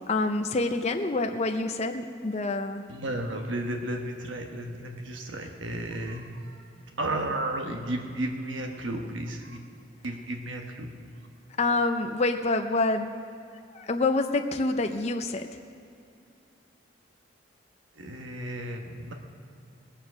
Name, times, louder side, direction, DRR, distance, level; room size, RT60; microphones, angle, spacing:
voice 1, 0.1-2.9 11.6-13.1 13.5-15.6, left 2 dB, 35° left, 5 dB, 0.5 m, -27 dB
voice 2, 2.9-9.6 10.0-10.9 17.9-19.1, right 1 dB, 80° right, 3 dB, 1.1 m, -33 dB
19.5 x 7.3 x 6.2 m, 2.6 s
head